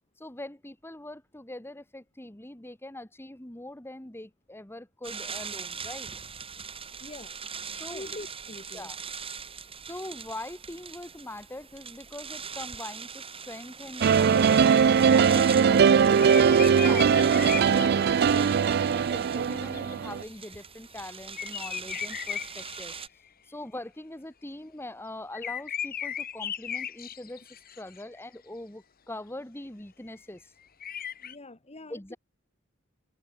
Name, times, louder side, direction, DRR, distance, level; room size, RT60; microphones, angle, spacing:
voice 1, 0.2-6.1 7.7-8.1 8.7-9.0 9.9-14.5 15.0-22.9 23.5-27.4 27.8-30.4 31.9-32.2, left 1 dB, 10° left, 1.4 m, -42 dB
sound 1, 5.0-23.1, right 6 dB, 30° right, 3.8 m, -41 dB
voice 2, 7.0-7.3 7.9-8.9 31.2-32.2, left 2 dB, 30° left, 1.6 m, -44 dB
sound 2, 14.0-20.2, right 6 dB, 50° right, 0.4 m, -21 dB
sound 3, 14.7-15.7 16.1-18.5 19.6-20.4 21.0-21.1 21.3-23.3 25.3-28.2 30.8-31.3, left 9 dB, 45° left, 1.6 m, -37 dB
head